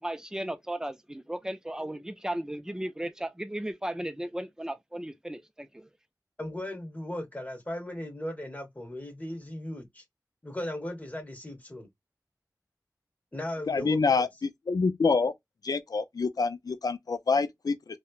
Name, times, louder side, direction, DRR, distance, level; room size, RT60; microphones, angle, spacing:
voice 1, 0.0-5.9, right 1 dB, 10° right, 0.4 m, -35 dB
voice 2, 6.4-10.0 10.4-11.9 13.3-14.3, left 1 dB, 25° left, 0.9 m, -37 dB
voice 3, 13.7-15.3 15.6-18.0, left 4 dB, 65° left, 0.4 m, -27 dB
2.9 x 2.1 x 2.3 m
wide cardioid pair, 65°, 7 cm